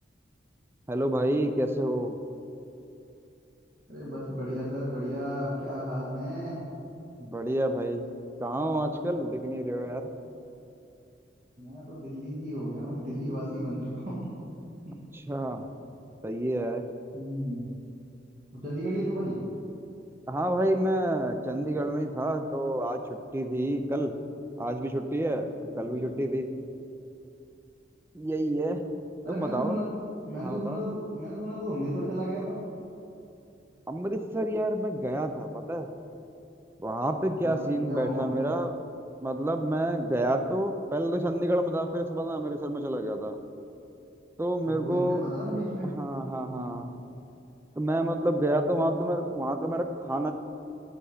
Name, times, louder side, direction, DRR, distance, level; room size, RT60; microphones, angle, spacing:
voice 1, 0.9-2.2 7.2-8.0 8.4-10.0 15.1-15.6 16.2-16.8 20.3-24.1 24.6-25.5 25.8-26.5 28.1-28.8 29.3-29.8 30.4-30.8 33.9-35.9 36.8-38.7 39.2-43.4 44.4-45.2 45.8-46.9 47.8-50.3, right 1 dB, 15° right, 7 dB, 0.4 m, -29 dB
voice 2, 3.9-6.6 11.6-14.3 14.8-14.9 17.1-17.6 18.5-19.4 25.8-26.1 29.2-29.9 30.2-32.6 37.4-38.4 44.6-45.9 46.4-46.8, equal, 50° right, -7 dB, 1.5 m, -34 dB
7.8 x 5.6 x 6.5 m, 2.8 s
head